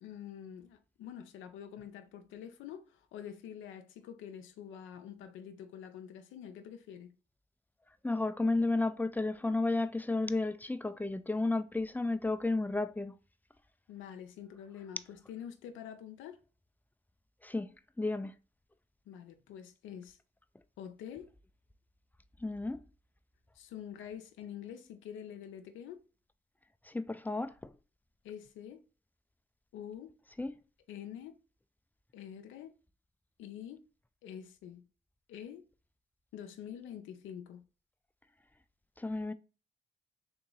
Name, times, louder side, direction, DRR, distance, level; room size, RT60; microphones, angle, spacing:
voice 1, 0.0-7.1 13.9-16.4 19.1-20.2 20.8-21.3 23.5-26.0 28.2-28.8 29.7-30.1 30.9-31.4 32.1-32.7 33.4-33.8 34.2-34.9 35.3-35.6 36.3-37.7, left 9 dB, 85° left, 0.5 m, -46 dB
voice 2, 8.0-13.1 17.4-17.7 18.0-18.3 22.4-22.8 26.9-27.7 30.4-30.5 39.0-39.3, left 2 dB, 10° left, 0.4 m, -32 dB
3.8 x 2.9 x 3.8 m
supercardioid pair, 50°, 20 cm